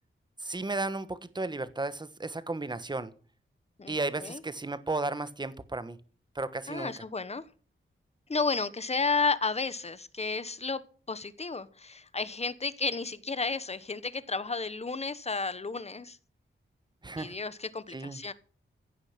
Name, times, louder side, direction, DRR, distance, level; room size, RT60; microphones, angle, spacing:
voice 1, 0.4-3.1 3.9-6.0 6.3-7.0 17.0-17.3 17.9-18.2, right 2 dB, 20° right, 14 dB, 1.2 m, -34 dB
voice 2, 6.7-7.4 8.3-10.8 11.1-16.2 17.2-18.3, left 4 dB, 30° left, 15 dB, 1.1 m, -32 dB
15.5 x 9.8 x 5.9 m, 0.40 s
wide cardioid pair, 160°, 21 cm